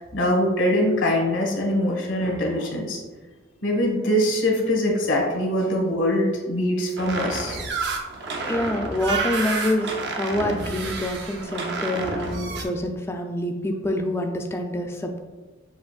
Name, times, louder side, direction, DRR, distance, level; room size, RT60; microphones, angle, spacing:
voice 1, 0.0-3.0 3.6-7.6, left 1 dB, 85° left, -1 dB, 1.4 m, -23 dB
sound 1, 7.0-12.6, right 3 dB, 60° right, 0.6 m, -29 dB
voice 2, 8.5-15.2, left 1 dB, 15° left, 3 dB, 0.3 m, -26 dB
7.1 x 2.9 x 2.4 m, 1.2 s
head